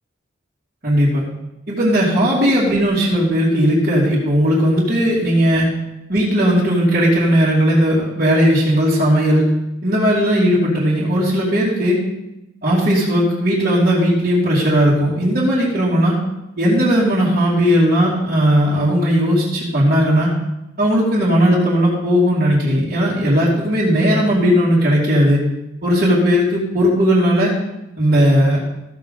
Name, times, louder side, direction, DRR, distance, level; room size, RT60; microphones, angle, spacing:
voice 1, 0.8-1.2 1.7-5.7 6.1-9.5 9.8-12.0 12.6-16.2 16.6-20.3 20.8-25.4 25.8-27.5 28.0-28.6, equal, 45° right, -11 dB, 2.5 m, -16 dB
15.0 x 7.1 x 3.9 m, 0.94 s
head